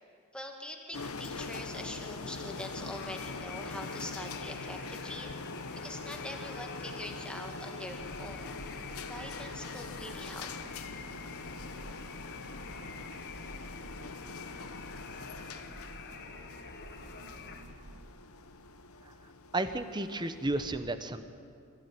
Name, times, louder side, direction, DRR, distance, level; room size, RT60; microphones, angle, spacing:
voice 1, 0.3-5.3 5.8-8.6 9.1-10.5, left 1 dB, 5° left, 2 dB, 2.0 m, -43 dB
sound 1, 0.9-20.7, left 3 dB, 80° left, 1.1 m, -43 dB
sound 2, 2.9-17.6, left 5 dB, 50° left, 1.8 m, -48 dB
sound 3, 8.0-18.1, right 1 dB, 75° right, 2.2 m, -51 dB
voice 2, 19.5-21.2, right 2 dB, 20° right, 9 dB, 1.0 m, -32 dB
24.0 x 15.0 x 9.6 m, 2.4 s
head